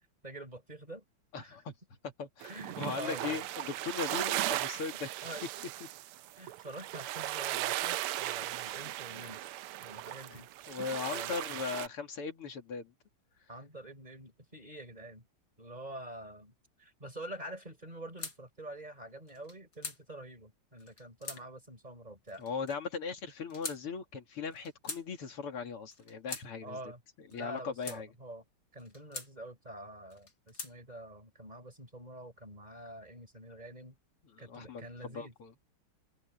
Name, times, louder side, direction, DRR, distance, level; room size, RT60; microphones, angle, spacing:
voice 1, 0.2-1.0 1.3-1.6 2.4-3.4 5.2-5.6 6.3-9.5 9.8-10.5 11.1-11.4 13.5-15.3 15.6-16.5 16.8-22.4 26.6-27.0 27.3-28.4 28.7-34.0 34.4-35.3, right 1 dB, 20° right, 4.6 m, -46 dB
voice 2, 1.3-1.7 2.0-2.5 2.8-5.1 10.3-10.4 10.7-12.9 22.4-26.8 27.3-28.1 34.4-35.5, left 5 dB, 85° left, 3.3 m, -39 dB
sound 1, 2.4-11.9, right 15 dB, 80° right, 1.5 m, -37 dB
sound 2, 18.2-18.4 19.3-20.0 20.8-21.4 22.3-22.8 23.5-23.8 24.5-25.0 25.9-26.5 27.3-28.0 28.8-29.3 30.1-30.7, left 3 dB, 45° left, 6.2 m, -43 dB
omnidirectional pair, 2.4 m